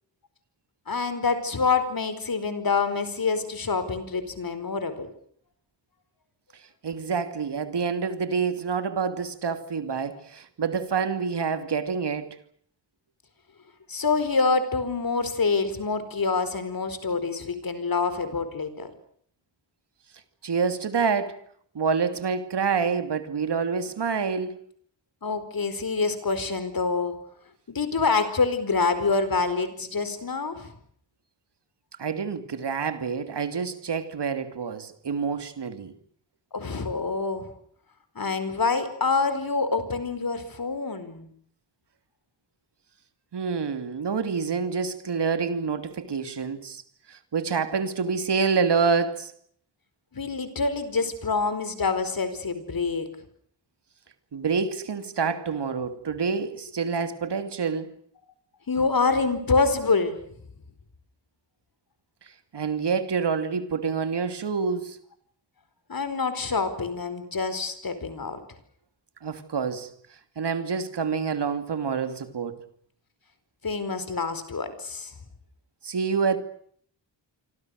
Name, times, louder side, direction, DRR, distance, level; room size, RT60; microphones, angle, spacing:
voice 1, 0.9-5.1 13.9-18.9 25.2-27.2 27.7-30.7 36.5-37.5 38.1-41.3 50.1-53.1 58.7-60.2 65.9-68.4 73.6-75.1, left 4 dB, 50° left, 4.7 m, -26 dB
voice 2, 6.8-12.4 20.4-21.4 21.7-24.6 32.0-35.9 43.3-46.8 47.1-49.3 54.3-57.9 62.5-65.0 69.2-69.9 70.4-72.6 75.8-76.4, right 5 dB, 70° right, 2.9 m, -27 dB
27.5 x 25.5 x 6.6 m
wide cardioid pair, 85°, 44 cm